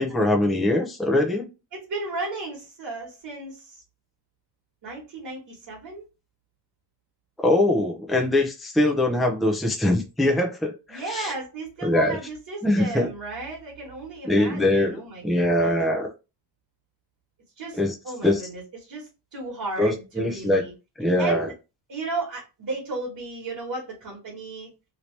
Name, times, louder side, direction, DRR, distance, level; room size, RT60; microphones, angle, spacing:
voice 1, 0.0-1.5 7.4-11.3 11.8-12.2 12.6-13.1 14.2-16.1 17.8-17.9 18.2-18.4 19.8-20.6 21.0-21.5, left 1 dB, ahead, 1 dB, 0.5 m, -22 dB
voice 2, 1.7-3.8 4.8-6.1 10.9-15.8 17.6-20.7 21.2-21.5 21.9-24.7, right 3 dB, 50° right, -4 dB, 1.4 m, -35 dB
3.0 x 2.7 x 3.1 m, 0.28 s
wide cardioid pair, 160°, 44 cm